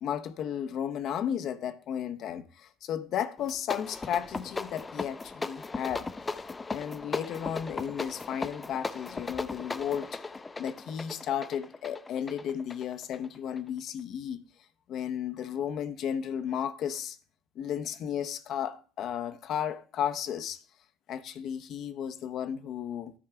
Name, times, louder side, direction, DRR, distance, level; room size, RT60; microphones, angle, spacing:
voice 1, 0.0-6.1 6.7-10.2 10.6-14.4 14.9-17.2 17.6-20.6 21.1-23.1, left 9 dB, 60° left, 0.9 m, -34 dB
sound 1, 3.4-13.7, left 3 dB, 25° left, 0.6 m, -38 dB
12.5 x 4.7 x 4.5 m
hypercardioid pair, 60°, 0 cm